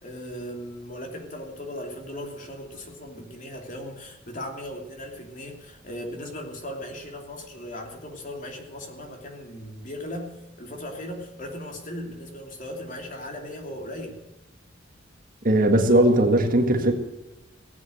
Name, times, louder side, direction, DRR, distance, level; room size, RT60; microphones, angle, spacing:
voice 1, 0.0-14.2, left 1 dB, 40° left, 2 dB, 2.9 m, -37 dB
voice 2, 15.4-16.9, right 1 dB, 45° right, 4 dB, 1.8 m, -19 dB
18.0 x 8.5 x 8.0 m, 1.0 s
head